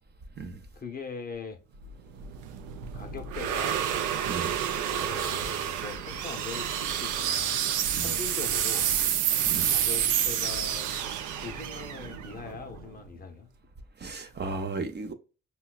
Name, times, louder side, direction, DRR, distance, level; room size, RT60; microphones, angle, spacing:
voice 1, 0.7-1.6 2.9-3.9 4.9-7.6 8.0-8.9 9.7-10.9 11.4-13.5, left 5 dB, 30° left, 0.6 m, -41 dB
sound 1, 1.8-13.1, right 9 dB, 85° right, 0.5 m, -29 dB
voice 2, 14.0-15.1, right 3 dB, 35° right, 0.6 m, -35 dB
5.5 x 2.2 x 2.3 m
cardioid pair, 90°, 30 cm